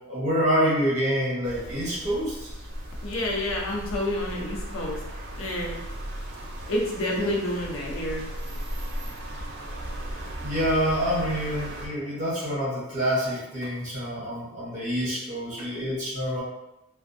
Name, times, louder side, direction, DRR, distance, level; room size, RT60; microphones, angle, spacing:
voice 1, 0.1-2.5 10.4-16.4, equal, 35° right, -8 dB, 0.9 m, -27 dB
sound 1, 1.4-11.9, right 1 dB, 55° right, 0.4 m, -36 dB
voice 2, 3.0-5.0 5.4-5.8 6.7-8.2, left 1 dB, 75° left, -2 dB, 0.6 m, -29 dB
2.5 x 2.2 x 2.5 m, 0.92 s
head